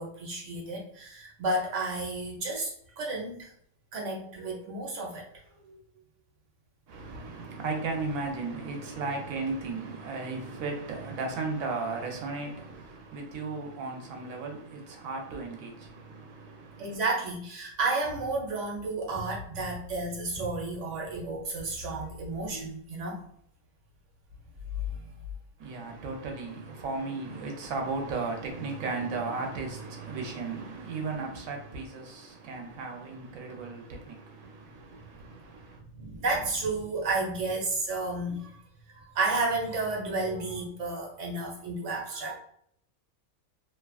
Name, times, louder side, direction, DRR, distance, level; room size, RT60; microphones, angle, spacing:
voice 1, 0.0-3.5 3.9-5.2 5.6-5.8 16.8-23.2 24.9-25.0 34.9-35.0 35.9-38.6 38.9-42.3, right 2 dB, 65° right, 1.1 m, -32 dB
voice 2, 6.9-17.0 25.6-35.8, right 3 dB, 85° right, 1.1 m, -35 dB
2.8 x 2.3 x 2.3 m
omnidirectional pair, 1.4 m